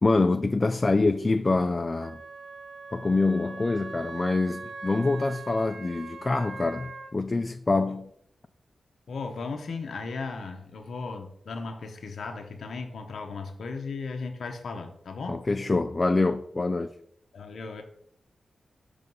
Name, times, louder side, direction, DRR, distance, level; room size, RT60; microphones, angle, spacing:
voice 1, 0.0-2.2 2.9-8.1 15.3-16.9, left 3 dB, 40° left, 0.3 m, -25 dB
Wind instrument woodwind instrument, 2.0-7.1, right 4 dB, 70° right, 0.6 m, -41 dB
voice 2, 9.1-15.5 17.3-17.8, left 4 dB, 75° left, 0.6 m, -36 dB
5.3 x 3.4 x 5.3 m
cardioid pair, 45°, 0 cm